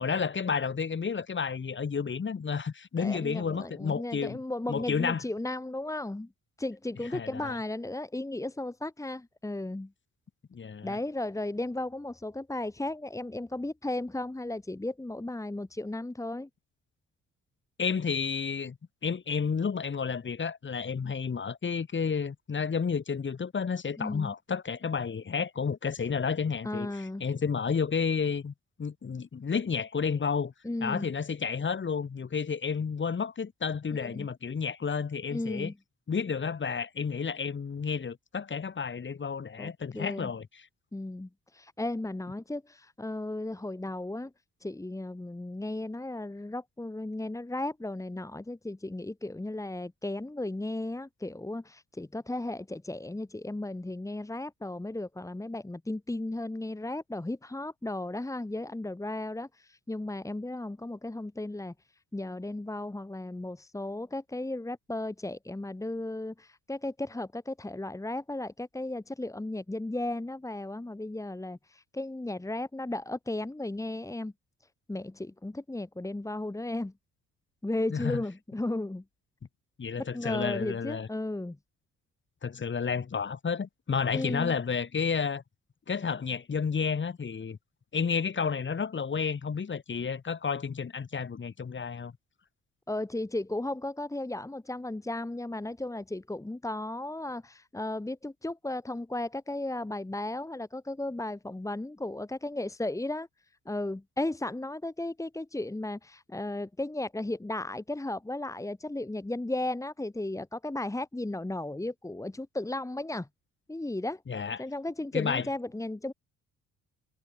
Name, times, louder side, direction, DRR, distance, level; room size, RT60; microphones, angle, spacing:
voice 1, 0.0-4.4 4.7-5.2 7.1-7.6 10.5-11.0 17.8-18.8 19.0-30.5 30.8-35.7 36.1-40.6 77.9-78.2 79.8-81.1 82.4-85.4 85.9-87.6 87.9-92.1 114.3-114.6 115.1-115.5, left 6 dB, 40° left, 4.9 m, -31 dB
voice 2, 3.0-6.3 6.6-9.9 10.8-16.5 24.0-24.3 26.6-27.2 30.6-31.1 33.9-34.3 35.3-35.7 39.6-40.3 40.9-44.3 44.6-61.7 62.1-74.3 74.9-76.9 77.6-79.0 79.9-81.6 84.1-84.5 92.9-103.3 103.7-113.3 113.7-114.2 114.6-116.1, left 2 dB, 10° left, 1.9 m, -35 dB
cardioid pair, 90°, 30 cm